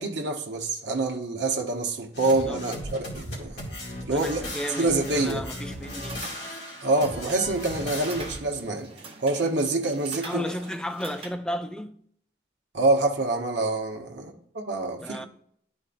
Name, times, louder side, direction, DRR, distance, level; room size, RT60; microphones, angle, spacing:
voice 1, 0.0-3.5 4.1-4.5 4.8-5.4 6.8-8.9 9.2-10.4 12.7-15.3, right 2 dB, 75° right, 1.0 m, -26 dB
sound 1, 2.1-8.4, left 1 dB, 65° left, 2.2 m, -36 dB
voice 2, 2.2-2.6 4.1-6.2 10.2-12.0 14.9-15.3, equal, 5° left, 0.4 m, -34 dB
sound 2, 5.6-11.3, right 3 dB, 30° right, 1.0 m, -45 dB
11.5 x 4.5 x 2.5 m
head